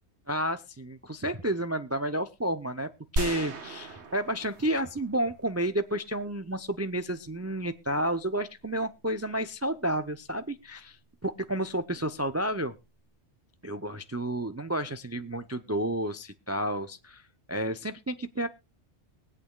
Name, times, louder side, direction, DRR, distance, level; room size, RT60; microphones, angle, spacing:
voice 1, 0.3-12.7 13.6-18.5, right 1 dB, 25° right, 10 dB, 0.3 m, -31 dB
sound 1, 3.2-5.4, right 2 dB, 70° right, 1.5 m, -35 dB
22.5 x 8.4 x 2.3 m, 0.27 s
omnidirectional pair, 1.2 m